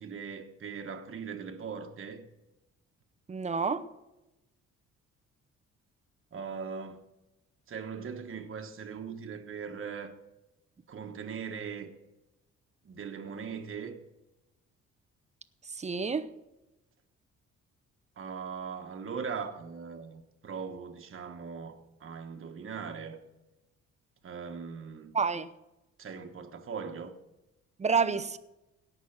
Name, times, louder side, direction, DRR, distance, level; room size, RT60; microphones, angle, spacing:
voice 1, 0.0-2.2 6.3-7.0 7.7-10.1 10.9-11.9 12.8-14.0 18.2-23.2 24.2-25.1 26.0-27.1, right 6 dB, 45° right, 1.3 m, -40 dB
voice 2, 3.3-3.9 15.8-16.3 25.1-25.5 27.8-28.4, right 5 dB, 25° right, 0.7 m, -28 dB
17.0 x 6.1 x 5.9 m
cardioid pair, 90°, 30 cm